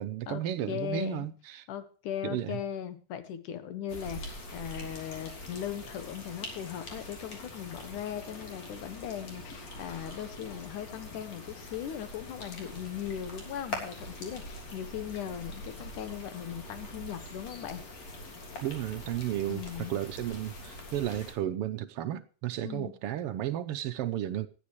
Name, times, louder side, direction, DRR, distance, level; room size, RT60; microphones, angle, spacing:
voice 1, 0.0-1.7 2.2-2.6 18.6-19.6 19.9-24.5, right 12 dB, 75° right, 1.3 m, -33 dB
voice 2, 0.7-1.3 1.7-17.8 19.5-20.0 22.6-22.9, left 10 dB, 80° left, 2.8 m, -38 dB
sound 1, 3.9-21.3, left 2 dB, 55° left, 4.4 m, -44 dB
sound 2, 4.9-13.3, left 2 dB, 25° left, 2.2 m, -54 dB
18.5 x 11.5 x 3.0 m
omnidirectional pair, 3.6 m